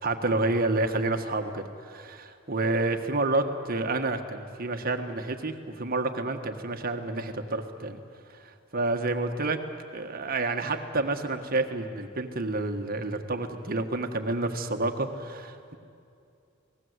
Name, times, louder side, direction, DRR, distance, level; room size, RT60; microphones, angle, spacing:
voice 1, 0.0-8.0 8.3-9.6 9.9-15.8, right 2 dB, 45° right, 5 dB, 1.6 m, -29 dB
29.0 x 19.5 x 8.2 m, 2.5 s
head